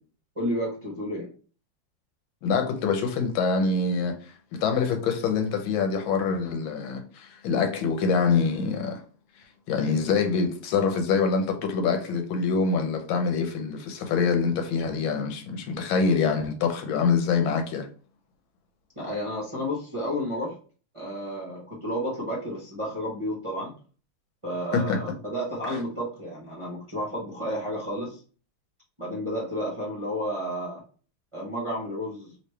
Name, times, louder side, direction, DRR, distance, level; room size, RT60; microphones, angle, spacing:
voice 1, 0.4-1.3 19.0-20.5 20.9-23.7 24.4-28.2 29.0-30.8 31.3-32.3, equal, 25° right, 0.7 m, -31 dB
voice 2, 2.4-9.0 9.7-17.9 24.7-25.0 25.6-25.8, left 5 dB, 90° left, 1.5 m, -25 dB
3.1 x 3.1 x 3.2 m
omnidirectional pair, 2.1 m